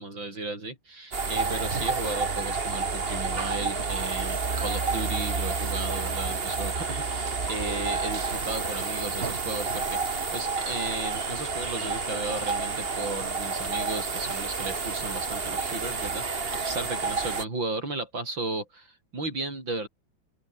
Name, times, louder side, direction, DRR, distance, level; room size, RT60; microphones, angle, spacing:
voice 1, 0.0-19.9, right 2 dB, 85° right, 7.8 m, -35 dB
sound 1, 1.1-17.4, right 4 dB, 30° right, 1.9 m, -30 dB
open air
omnidirectional pair, 2.0 m